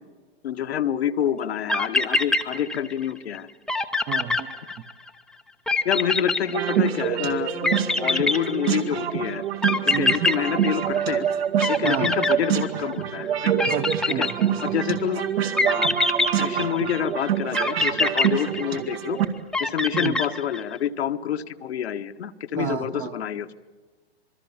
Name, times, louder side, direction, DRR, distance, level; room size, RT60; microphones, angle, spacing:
voice 1, 0.4-3.5 5.8-7.7 8.0-9.4 10.0-11.3 11.7-13.5 14.2-14.3 14.6-15.2 15.7-15.9 16.4-19.2 19.6-23.5, left 9 dB, 75° left, 8 dB, 1.3 m, -27 dB
sound 1, 1.4-1.5 1.7-3.1 3.3-3.4 3.7-5.1 5.7-7.1 7.6-9.0 9.6-11.3 11.6-13.0 13.6-14.8 15.6-17.0 17.5-19.1 19.5-20.8, left 2 dB, ahead, 0.7 m, -24 dB
voice 2, 4.1-4.5 9.9-10.3 11.8-12.1 13.7-14.8 19.9-20.2 22.6-23.1, right 9 dB, 25° right, 7 dB, 1.0 m, -29 dB
sound 2, 6.5-19.2, right 9 dB, 70° right, 2.2 m, -26 dB
26.5 x 21.5 x 7.2 m, 1.3 s
hypercardioid pair, 135°, 32 cm